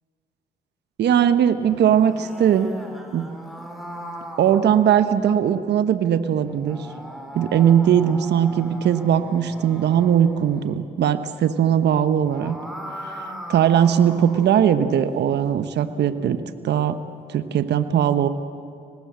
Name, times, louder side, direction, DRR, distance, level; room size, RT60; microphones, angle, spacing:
voice 1, 1.0-2.7 3.1-3.2 4.4-6.9 7.3-12.6 13.5-17.0 17.3-18.3, right 9 dB, 65° right, 10 dB, 1.1 m, -19 dB
sound 1, 1.6-5.4 6.4-10.6 12.1-14.6, equal, ahead, 5.3 m, -39 dB
25.0 x 19.5 x 7.6 m, 2.4 s
hypercardioid pair, 50°, 19 cm